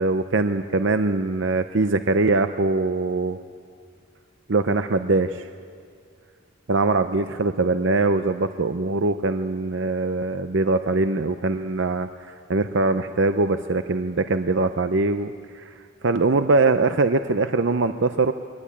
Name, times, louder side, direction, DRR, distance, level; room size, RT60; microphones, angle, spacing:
voice 1, 0.0-3.4 4.5-5.5 6.7-15.7 16.0-18.3, right 3 dB, 55° right, 9 dB, 0.6 m, -22 dB
22.5 x 18.5 x 8.6 m, 2.1 s
head